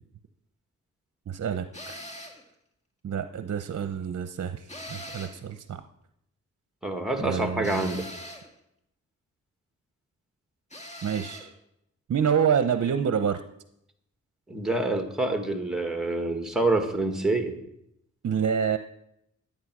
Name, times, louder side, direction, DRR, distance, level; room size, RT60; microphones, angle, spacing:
voice 1, 1.3-2.0 3.0-5.8 7.2-7.9 11.0-11.5 12.1-13.4 18.2-18.8, right 7 dB, 55° right, 9 dB, 0.8 m, -27 dB
sound 1, 1.7-2.5 4.7-5.5 7.6-8.5 10.7-11.5, left 1 dB, 20° left, 2.2 m, -41 dB
voice 2, 6.8-8.1 14.5-17.6, right 2 dB, ahead, 5 dB, 1.8 m, -27 dB
12.5 x 8.8 x 6.1 m, 0.79 s
cardioid pair, 70°, 31 cm